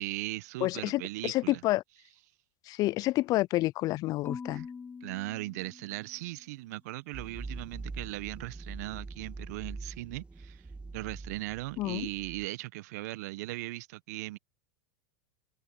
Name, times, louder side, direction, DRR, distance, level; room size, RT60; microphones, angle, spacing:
voice 1, 0.0-1.6 4.5-4.6 5.0-10.6 10.9-14.4, right 19 dB, 65° right, 1.5 m, -38 dB
voice 2, 0.6-1.8 2.7-4.7 11.8-12.1, left 18 dB, 40° left, 0.3 m, -29 dB
Marimba xylophone / Wood, 4.2-6.4, left 5 dB, 20° left, 1.7 m, -44 dB
sound 1, 7.1-12.5, right 3 dB, 10° right, 2.0 m, -43 dB
open air
hypercardioid pair, 95°, 9 cm